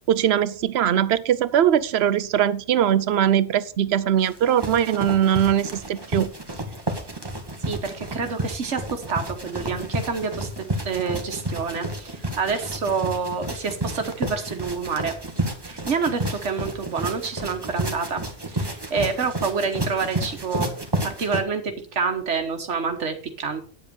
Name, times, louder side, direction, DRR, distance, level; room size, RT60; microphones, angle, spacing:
voice 1, 0.1-6.3, right 10 dB, 65° right, 17 dB, 0.9 m, -21 dB
sound 1, 4.2-21.4, right 1 dB, 20° right, 1.4 m, -31 dB
voice 2, 7.7-10.5 10.8-15.1 15.6-18.2 18.5-20.7 21.0-23.6, right 5 dB, 85° right, 6 dB, 1.5 m, -27 dB
9.5 x 7.9 x 5.2 m, 0.42 s
omnidirectional pair, 1.2 m